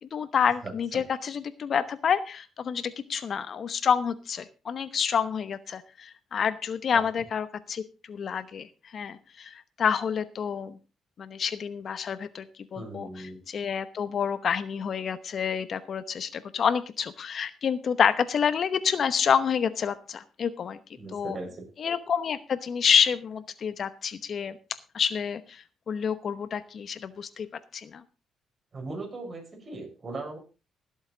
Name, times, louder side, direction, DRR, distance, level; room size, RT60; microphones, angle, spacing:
voice 1, 0.0-7.8 8.1-8.7 8.9-10.8 11.2-12.4 12.7-13.1 13.5-20.8 21.1-21.4 21.8-24.6 24.9-27.5 27.7-28.0, left 7 dB, 55° left, 14 dB, 0.9 m, -28 dB
voice 2, 0.6-1.0 6.9-7.0 12.7-13.4 21.0-21.6 28.7-30.4, right 2 dB, 35° right, 3 dB, 5.9 m, -38 dB
19.0 x 8.0 x 3.9 m, 0.31 s
cardioid pair, 90°, 0 cm